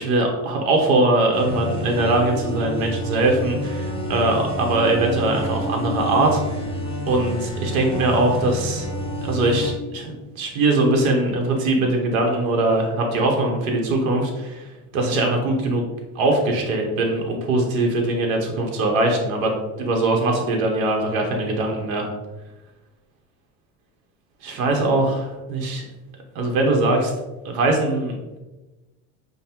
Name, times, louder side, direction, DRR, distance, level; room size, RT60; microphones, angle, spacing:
voice 1, 0.0-6.6 7.1-8.9 9.2-15.8 16.1-22.1 24.4-25.8 26.3-27.1 27.4-28.4, right 2 dB, 85° right, 1 dB, 0.8 m, -21 dB
sound 1, 1.3-9.7, equal, 15° left, 0.8 m, -29 dB
5.2 x 2.1 x 2.9 m, 1.1 s
supercardioid pair, 110°, 41 cm